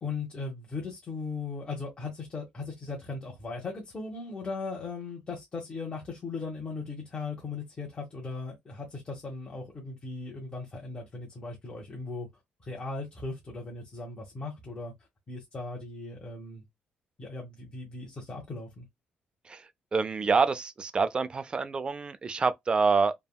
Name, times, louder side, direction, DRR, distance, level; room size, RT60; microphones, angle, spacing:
voice 1, 0.0-12.3 12.6-14.9 15.3-16.6 17.2-18.9, left 3 dB, 30° left, 1.0 m, -38 dB
voice 2, 19.9-23.1, right 4 dB, 30° right, 0.4 m, -26 dB
3.4 x 2.2 x 2.2 m
cardioid pair, 120°, 3 cm